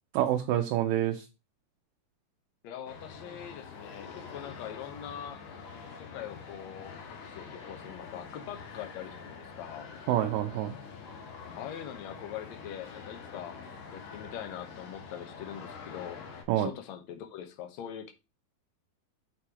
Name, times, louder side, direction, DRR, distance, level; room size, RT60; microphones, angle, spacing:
voice 1, 0.2-1.3 10.1-10.8 16.5-16.7, right 12 dB, 75° right, 5 dB, 2.2 m, -27 dB
voice 2, 2.6-5.4 6.0-9.9 11.5-13.6 13.9-16.2 16.6-18.1, left 10 dB, 65° left, 7 dB, 1.8 m, -42 dB
sound 1, 2.9-16.4, left 5 dB, 80° left, 3.8 m, -46 dB
7.8 x 4.4 x 4.9 m, 0.29 s
omnidirectional pair, 4.4 m